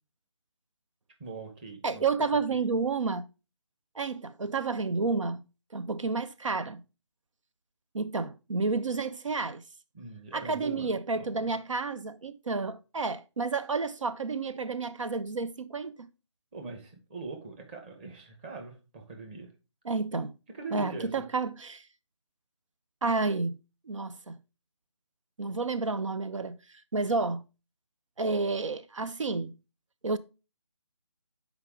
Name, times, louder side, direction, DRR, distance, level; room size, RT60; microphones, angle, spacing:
voice 1, 1.2-2.1 2.5-2.7 9.9-11.5 16.5-19.5 20.1-20.2 20.5-21.1, right 4 dB, 20° right, 1.1 m, -42 dB
voice 2, 1.8-3.2 3.9-5.4 5.7-6.8 7.9-9.6 10.3-16.1 19.8-20.3 20.7-21.9 23.0-23.5 23.9-24.4 25.4-27.4 28.2-29.5 30.0-30.2, right 4 dB, 90° right, 0.6 m, -30 dB
6.6 x 4.7 x 3.7 m
figure-of-eight pair, 160°, 16 cm